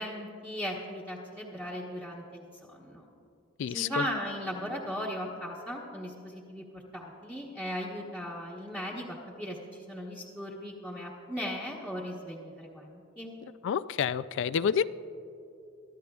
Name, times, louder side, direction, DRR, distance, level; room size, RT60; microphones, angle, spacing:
voice 1, 0.0-2.4 2.7-3.0 3.7-13.3, equal, 5° right, -6 dB, 1.1 m, -37 dB
voice 2, 3.6-4.0 13.6-14.8, left 7 dB, 60° left, 15 dB, 0.3 m, -28 dB
23.5 x 13.0 x 2.4 m, 2.6 s
head